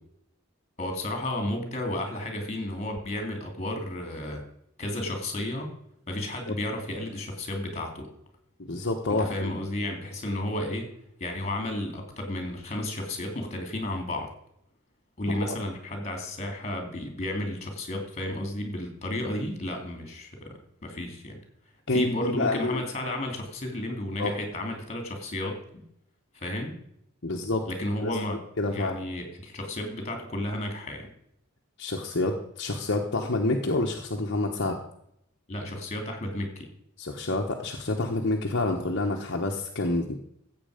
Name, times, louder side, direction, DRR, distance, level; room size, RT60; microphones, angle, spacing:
voice 1, 0.8-4.4 4.8-5.7 6.1-8.1 9.2-10.9 11.2-14.3 15.2-21.4 21.9-25.6 26.3-26.7 27.7-28.4 28.7-31.1 35.5-36.7, left 1 dB, 30° left, 4 dB, 3.1 m, -32 dB
voice 2, 8.6-9.5 15.3-15.6 21.9-22.8 24.2-24.3 27.2-27.7 28.0-29.1 31.8-34.8 37.0-40.2, left 2 dB, 55° left, 1 dB, 1.2 m, -28 dB
15.0 x 8.0 x 5.1 m, 0.74 s
head